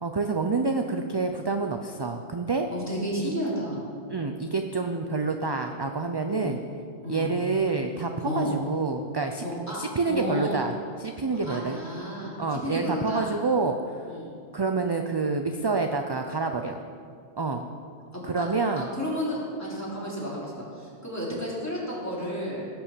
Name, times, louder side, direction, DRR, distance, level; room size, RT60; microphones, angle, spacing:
voice 1, 0.0-2.7 3.2-3.3 4.1-6.6 7.1-9.4 9.7-10.7 11.0-11.8 12.4-14.0 14.5-16.8 17.4-17.7 18.2-18.9, right 4 dB, 30° right, 5 dB, 0.5 m, -27 dB
voice 2, 2.7-3.8 6.3-6.5 7.0-7.3 8.2-8.6 9.4-9.8 10.1-10.6 11.3-13.3 14.1-14.3 18.1-18.5 18.8-22.7, equal, 15° left, -6 dB, 3.6 m, -32 dB
16.5 x 7.1 x 7.4 m, 2.3 s
omnidirectional pair, 1.1 m